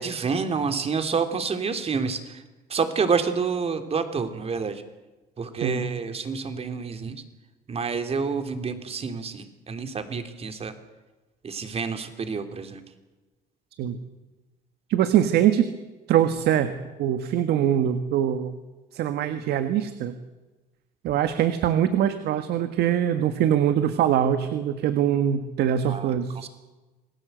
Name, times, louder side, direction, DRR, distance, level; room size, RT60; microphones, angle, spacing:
voice 1, 0.0-2.4 2.7-4.8 5.4-7.2 7.7-10.7 11.4-12.8 25.9-26.5, right 5 dB, 35° right, 8 dB, 3.0 m, -28 dB
voice 2, 14.9-15.7 16.1-16.7 17.0-18.5 18.9-20.1 21.0-26.5, right 10 dB, 75° right, 9 dB, 1.6 m, -23 dB
27.5 x 18.5 x 8.0 m, 1.2 s
cardioid pair, 110°, 17 cm